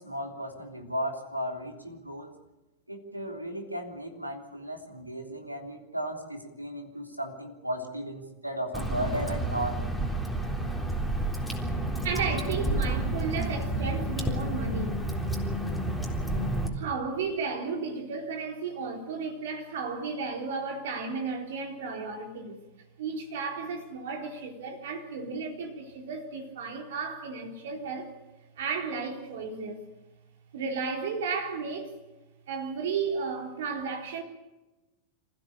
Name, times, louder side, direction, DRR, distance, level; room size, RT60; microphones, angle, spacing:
voice 1, 0.0-2.4 2.9-9.8, equal, 90° right, 3.4 m, -35 dB
Water / Drip, 8.7-16.7, right 1 dB, ahead, 3.7 m, -30 dB
voice 2, 12.0-15.0 16.7-22.6 23.0-28.1 28.6-29.9 30.5-32.0 32.5-34.2, right 5 dB, 60° right, 3.9 m, -34 dB
27.0 x 15.5 x 8.5 m
figure-of-eight pair, 90°, 0 cm